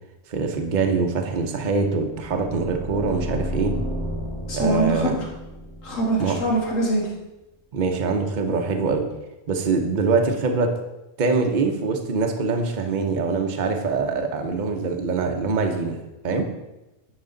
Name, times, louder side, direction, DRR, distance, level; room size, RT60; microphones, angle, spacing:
voice 1, 0.3-3.8 4.5-5.1 6.2-6.4 7.7-9.1 9.5-10.7 11.2-16.0 16.2-16.5, right 4 dB, 40° right, 4 dB, 0.8 m, -23 dB
sound 1, 2.0-6.9, equal, 55° left, 2.5 m, -33 dB
voice 2, 4.5-5.3 5.8-7.1, right 1 dB, 70° left, -3 dB, 2.2 m, -23 dB
9.4 x 4.9 x 3.9 m, 0.99 s
omnidirectional pair, 1.4 m